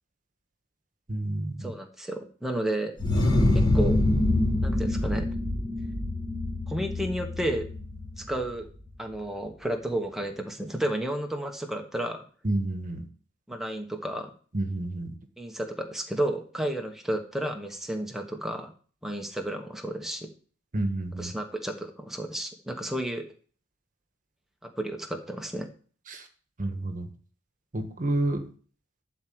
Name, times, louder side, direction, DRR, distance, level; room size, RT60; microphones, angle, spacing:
voice 1, 1.1-1.7 12.4-13.0 14.5-15.1 20.7-21.3 26.1-26.3 26.6-27.1 27.7-28.5, right 1 dB, 40° right, 6 dB, 1.3 m, -29 dB
voice 2, 1.6-2.9 3.5-4.0 4.6-5.3 6.7-7.7 8.2-8.7 9.0-12.2 13.5-14.3 15.4-18.7 19.0-20.3 21.2-23.2 24.6-25.7, right 1 dB, ahead, 3 dB, 1.2 m, -32 dB
sound 1, 3.0-8.5, left 1 dB, 25° left, 3.4 m, -25 dB
11.5 x 4.6 x 7.8 m, 0.42 s
head